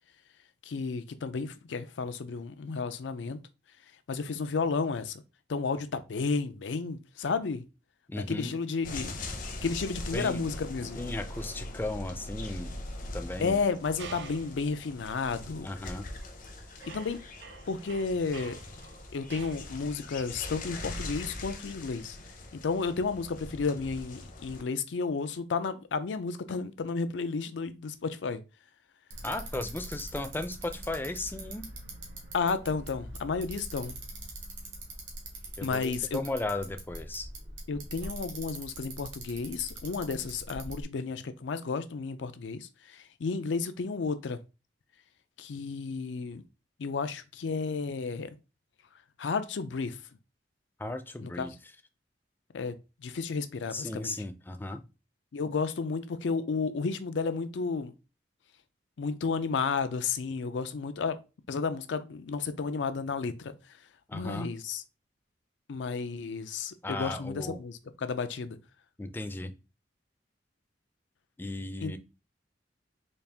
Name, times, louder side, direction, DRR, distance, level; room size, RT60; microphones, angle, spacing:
voice 1, 0.7-3.4 4.1-5.2 5.5-7.6 8.2-9.1 9.6-11.0 13.4-15.7 16.8-17.2 17.7-18.6 19.1-22.2 22.5-28.4 32.3-34.0 35.6-36.2 37.7-44.4 45.4-46.4 46.8-48.3 49.2-50.0 51.2-51.5 52.5-52.8 53.0-54.1 55.3-57.9 59.0-61.2 61.5-63.6 64.1-64.8 65.7-68.6 71.8-72.0, left 4 dB, 90° left, 0.5 m, -32 dB
voice 2, 8.1-8.5 10.1-10.4 11.0-12.7 13.1-13.6 15.6-16.1 29.2-31.7 35.6-37.3 50.8-51.5 53.7-54.8 64.1-64.5 66.8-67.6 69.0-69.5 71.4-72.0, left 2 dB, 10° left, 0.3 m, -35 dB
sound 1, 8.8-24.6, left 2 dB, 50° left, 0.7 m, -41 dB
sound 2, 14.0-14.6 15.3-15.5 16.1-16.5 16.8-19.7, right 6 dB, 70° right, 0.5 m, -47 dB
Bicycle, 29.1-40.8, right 2 dB, 90° right, 1.4 m, -43 dB
4.1 x 2.4 x 3.4 m
head